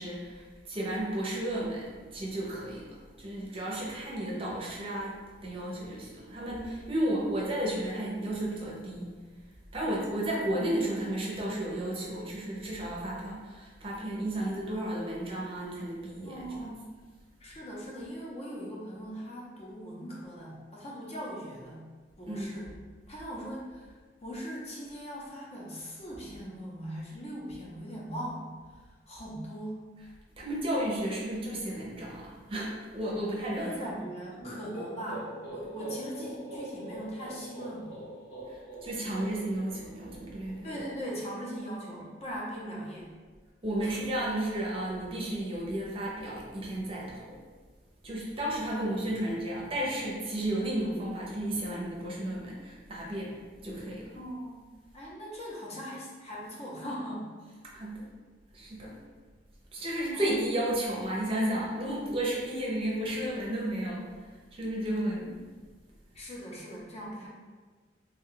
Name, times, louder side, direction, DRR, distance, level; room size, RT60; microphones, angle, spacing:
voice 1, 0.0-9.2 9.7-16.4 22.2-22.6 30.4-33.7 38.5-40.7 42.6-42.7 43.6-47.4 48.0-54.2 57.6-58.1 58.5-58.9 59.7-64.3 64.5-65.4, right 1 dB, 30° right, -4 dB, 0.6 m, -33 dB
voice 2, 9.8-10.2 16.2-16.9 17.4-21.8 22.2-22.7 23.1-23.9 24.2-29.9 33.5-38.0 40.6-43.1 43.8-43.9 54.1-57.4 60.1-60.5 66.1-67.3, equal, 35° left, -4 dB, 0.7 m, -40 dB
sound 1, 34.4-42.1, right 1 dB, 85° left, 1.1 m, -43 dB
3.4 x 2.2 x 3.7 m, 1.4 s
head